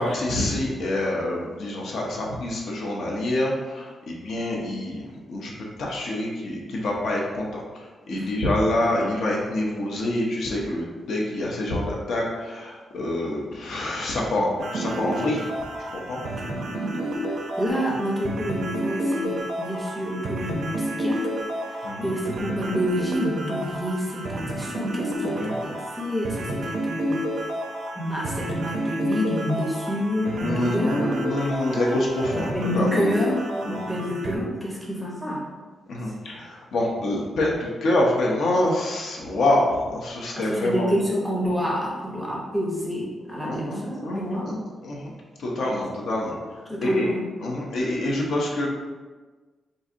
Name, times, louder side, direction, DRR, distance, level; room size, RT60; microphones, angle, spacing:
voice 1, 0.0-5.0 5.3-5.5 5.8-15.4 15.9-16.2 21.8-22.1 25.2-25.5 30.3-33.0 33.6-34.0 35.9-40.9 43.4-45.1 45.4-47.1 47.4-48.7, left 1 dB, 65° left, -2 dB, 0.6 m, -26 dB
voice 2, 8.1-8.4 16.3-17.1 17.6-21.3 21.6-27.2 28.0-31.1 32.3-35.4 40.3-44.5 46.7-47.2, equal, ahead, -4 dB, 0.6 m, -28 dB
sound 1, 14.6-34.4, right 1 dB, 55° right, 0.4 m, -30 dB
3.9 x 2.5 x 2.5 m, 1.3 s
wide cardioid pair, 180°, 0 cm